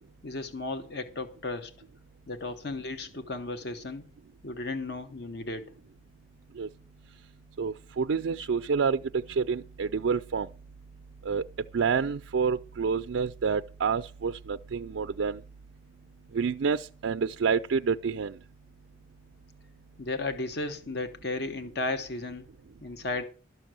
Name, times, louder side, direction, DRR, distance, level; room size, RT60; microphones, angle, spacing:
voice 1, 0.2-1.7 2.3-4.1 4.4-5.7 20.0-22.5 22.8-23.2, left 2 dB, 55° left, 1.0 m, -34 dB
voice 2, 7.6-10.5 11.3-11.4 11.7-15.4 16.3-18.3, right 5 dB, 85° right, 0.4 m, -28 dB
12.5 x 6.1 x 7.6 m
head